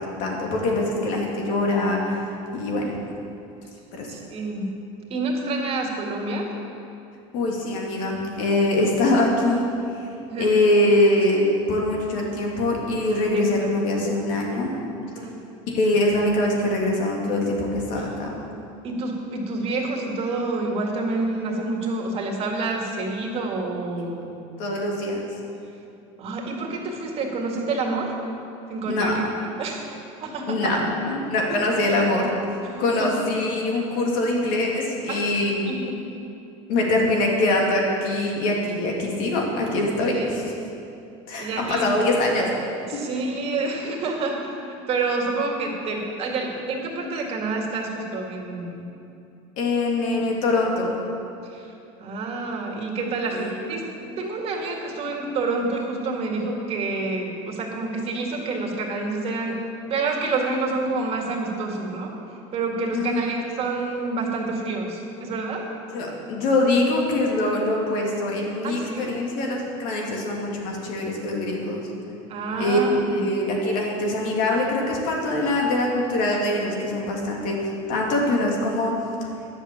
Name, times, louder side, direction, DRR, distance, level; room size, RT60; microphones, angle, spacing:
voice 1, 0.0-2.2 2.5-2.8 3.9-4.1 7.3-9.7 9.9-10.1 10.4-14.7 15.7-18.4 24.6-25.2 28.9-29.2 30.5-30.8 31.1-32.3 32.8-35.7 36.7-40.4 41.3-42.5 42.9-43.0 49.6-50.9 53.3-53.6 62.9-63.2 65.9-71.8 72.6-72.8 73.1-77.6 77.9-78.9, left 2 dB, 65° left, -1 dB, 2.5 m, -23 dB
voice 2, 4.1-4.7 5.1-6.5 10.3-10.6 13.3-14.0 15.2-15.3 18.0-18.2 18.8-24.4 26.2-28.2 28.7-29.1 29.6-30.7 31.5-31.6 32.6-33.1 35.1-35.3 35.7-36.0 40.1-40.3 41.4-42.0 42.9-48.9 51.4-51.7 52.0-59.6 59.9-62.1 62.5-65.7 68.6-69.2 72.3-73.2, right 3 dB, 40° right, 0 dB, 2.1 m, -28 dB
10.5 x 7.3 x 6.9 m, 2.7 s
supercardioid pair, 120°, 15 cm